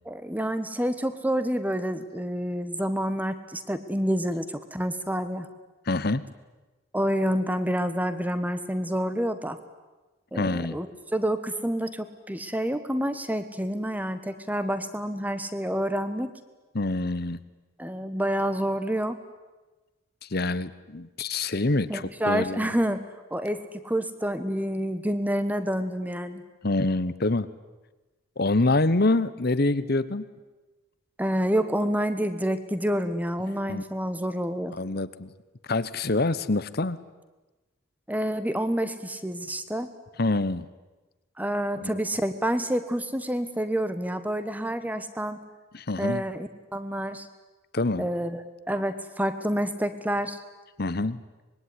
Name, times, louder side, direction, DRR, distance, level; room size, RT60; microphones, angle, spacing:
voice 1, 0.1-5.5 6.9-9.6 10.3-16.3 17.8-19.2 21.9-23.0 23.3-26.4 31.2-34.7 38.1-39.9 41.4-45.4 46.0-47.3 48.0-48.4 48.7-50.4, equal, 10° right, 11 dB, 1.4 m, -28 dB
voice 2, 5.9-6.2 10.3-10.8 16.7-17.4 20.2-22.7 26.6-27.5 28.4-30.3 33.7-33.8 34.7-35.3 35.7-37.0 40.2-40.7 41.8-42.0 45.7-46.2 47.7-48.1 50.8-51.2, left 2 dB, 45° left, 15 dB, 1.0 m, -26 dB
25.0 x 22.0 x 9.8 m, 1.2 s
head